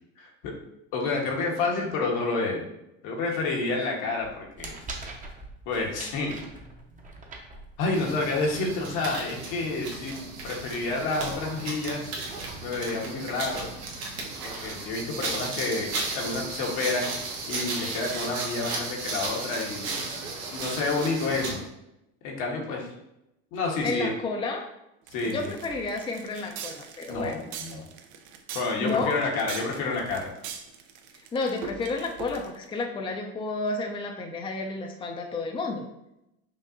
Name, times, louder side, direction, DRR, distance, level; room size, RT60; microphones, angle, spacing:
voice 1, 0.2-0.5 0.9-2.6 3.0-4.8 5.7-6.4 7.8-10.1 10.4-12.1 12.6-13.7 14.4-17.1 17.5-20.0 20.5-21.6 22.2-22.9 23.5-24.1 25.1-25.5 27.1-27.8 28.5-30.3, left 3 dB, 70° left, -1 dB, 1.2 m, -29 dB
sound 1, 4.2-8.2, right 2 dB, 25° right, 0.8 m, -42 dB
sound 2, 7.9-21.6, right 3 dB, 85° right, 1.0 m, -35 dB
voice 2, 23.8-24.7 25.2-27.4 28.8-29.2 31.3-35.8, left 3 dB, 15° left, 2 dB, 0.5 m, -31 dB
sound 3, 25.1-32.7, right 7 dB, 60° right, 0.6 m, -42 dB
5.5 x 2.6 x 2.6 m, 0.85 s
hypercardioid pair, 85°, 32 cm